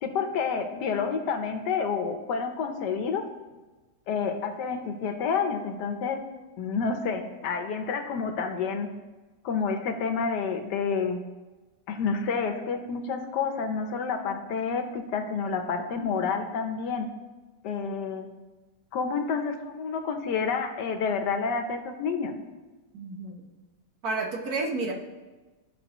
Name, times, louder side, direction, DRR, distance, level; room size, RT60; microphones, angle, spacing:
voice 1, 0.0-3.2 4.1-6.3 6.6-8.9 9.4-11.2 11.9-17.1 17.6-18.3 18.9-22.3, left 5 dB, 80° left, 6 dB, 1.4 m, -29 dB
voice 2, 22.9-23.4 24.0-24.9, right 3 dB, 65° right, 0 dB, 1.6 m, -30 dB
15.0 x 5.6 x 3.0 m, 1.2 s
omnidirectional pair, 1.8 m